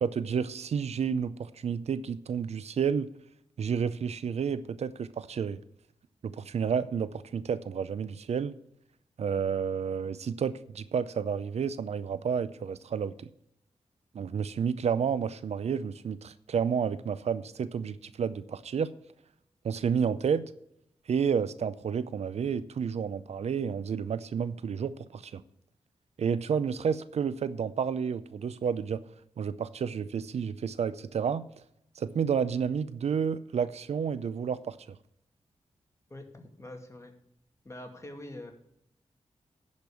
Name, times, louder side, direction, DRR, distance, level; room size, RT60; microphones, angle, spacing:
voice 1, 0.0-3.1 3.6-5.6 6.2-8.5 9.2-13.1 14.1-18.9 19.6-20.4 21.1-25.4 26.2-29.0 29.4-31.4 32.0-34.8, right 7 dB, 75° right, 0.5 m, -30 dB
voice 2, 36.1-37.1 37.6-38.5, left 1 dB, 25° left, 2.1 m, -44 dB
10.5 x 5.3 x 8.4 m
cardioid pair, 75°, 11 cm